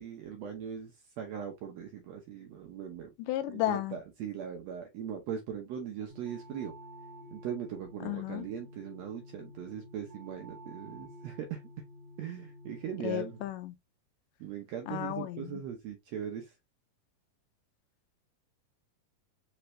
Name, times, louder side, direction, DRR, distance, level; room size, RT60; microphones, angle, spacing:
voice 1, 0.0-3.1 3.5-6.7 7.3-11.6 12.2-13.4 14.4-16.5, right 8 dB, 75° right, 1.5 m, -40 dB
voice 2, 3.2-4.0 8.0-8.5 13.0-13.7 14.9-15.6, left 14 dB, 85° left, 2.3 m, -33 dB
sound 1, 6.1-13.5, equal, 25° right, 1.4 m, -51 dB
5.1 x 3.4 x 2.9 m
omnidirectional pair, 3.8 m